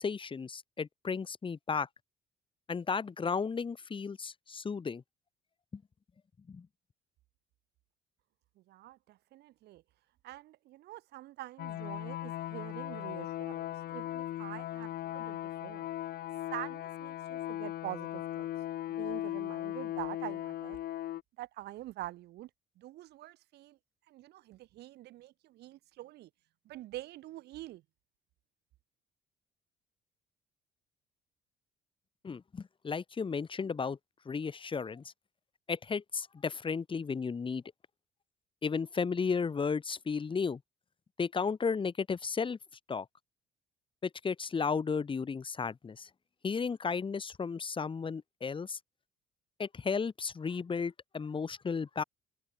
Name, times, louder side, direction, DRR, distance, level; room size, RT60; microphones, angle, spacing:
voice 1, 0.0-1.9 2.7-5.0 5.7-5.8 6.5-6.7 32.2-34.0 34.3-35.0 35.7-37.6 38.6-40.6 41.2-42.6 42.9-43.1 44.0-46.1 46.4-48.8 49.6-52.0, left 5 dB, 30° left, 6.1 m, -34 dB
voice 2, 8.6-9.8 10.2-15.9 16.5-18.5 18.9-20.8 21.4-22.5 22.8-23.8 24.1-26.3 26.6-27.8, right 16 dB, 75° right, 4.8 m, -45 dB
sound 1, 11.6-21.2, left 13 dB, 70° left, 2.9 m, -38 dB
cardioid pair, 110°, 17 cm